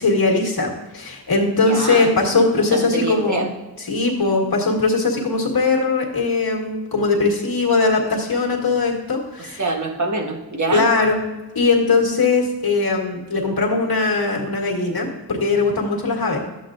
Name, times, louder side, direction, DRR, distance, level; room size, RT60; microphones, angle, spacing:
voice 1, 0.0-3.5 3.8-9.6 10.7-11.2 11.5-16.4, left 3 dB, 70° left, 0 dB, 1.7 m, -20 dB
voice 2, 1.6-2.1 2.5-3.5 9.6-10.9, right 2 dB, 50° right, 1 dB, 1.3 m, -25 dB
11.5 x 7.9 x 2.6 m, 1.1 s
wide cardioid pair, 60°, 38 cm